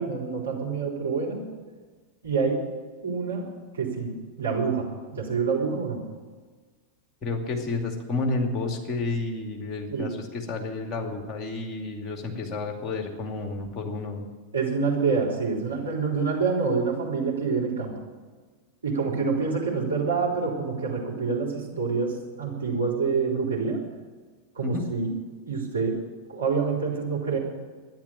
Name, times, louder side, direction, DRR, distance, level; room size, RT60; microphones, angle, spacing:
voice 1, 0.0-1.5 2.2-2.6 3.0-3.5 3.7-6.0 9.9-10.1 14.5-18.0 18.8-23.8 24.5-25.1 25.5-26.0 26.3-27.4, right 5 dB, 70° right, -3 dB, 4.0 m, -27 dB
voice 2, 7.2-10.1 10.5-14.2 24.6-24.8, left 3 dB, 25° left, 2 dB, 2.5 m, -30 dB
12.0 x 10.5 x 8.9 m, 1.4 s
figure-of-eight pair, 90°, 0 cm